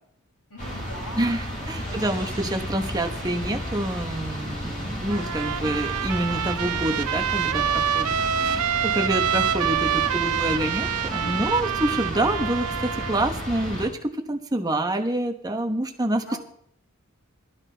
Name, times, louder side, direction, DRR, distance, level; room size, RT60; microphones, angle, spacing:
voice 1, 0.5-1.3 1.8-2.1 11.2-11.6 16.3-16.4, left 1 dB, 80° left, -3 dB, 6.9 m, -40 dB
sound 1, 0.6-13.9, equal, 35° left, 5.6 m, -33 dB
voice 2, 1.2-16.4, right 1 dB, 15° right, 4 dB, 1.0 m, -27 dB
Trumpet, 5.1-13.3, right 9 dB, 85° right, 0.4 m, -26 dB
18.0 x 13.0 x 3.4 m, 0.68 s
head